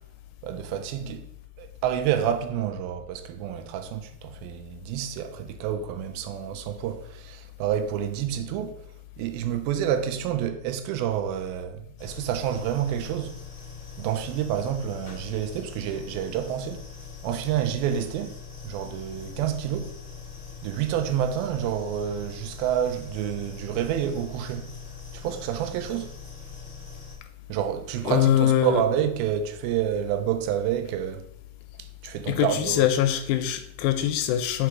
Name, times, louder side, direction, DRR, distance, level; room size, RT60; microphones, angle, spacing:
voice 1, 0.4-1.3 1.6-8.8 9.2-13.4 14.0-16.9 17.2-18.4 18.6-20.0 20.6-24.7 25.1-26.1 27.5-31.3 31.8-32.9, right 10 dB, 85° right, 2.4 m, -28 dB
sound 1, 12.0-27.1, left 4 dB, 50° left, 0.9 m, -43 dB
voice 2, 28.1-28.8 32.3-34.7, left 11 dB, 85° left, 2.3 m, -23 dB
5.9 x 4.8 x 4.6 m
omnidirectional pair, 4.2 m